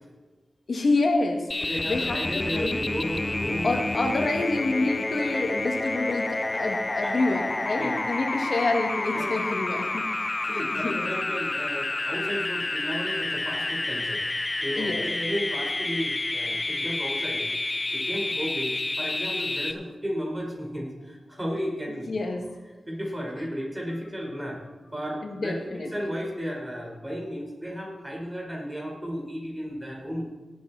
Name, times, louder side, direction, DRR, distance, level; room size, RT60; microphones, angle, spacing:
voice 1, 0.7-2.8 3.6-10.1 10.5-11.1 14.8-15.0 22.1-22.5 25.2-26.1, left 2 dB, 65° left, 3 dB, 2.1 m, -28 dB
sound 1, 1.5-19.7, left 2 dB, 35° left, 0.8 m, -29 dB
voice 2, 1.6-3.7 4.1-4.2 7.0-7.1 7.8-8.1 9.1-9.3 10.5-14.2 14.6-17.5 17.9-22.1 22.9-24.6 24.9-30.2, equal, 20° right, -1 dB, 4.6 m, -34 dB
18.0 x 8.7 x 4.3 m, 1.2 s
cardioid pair, 60°, 0 cm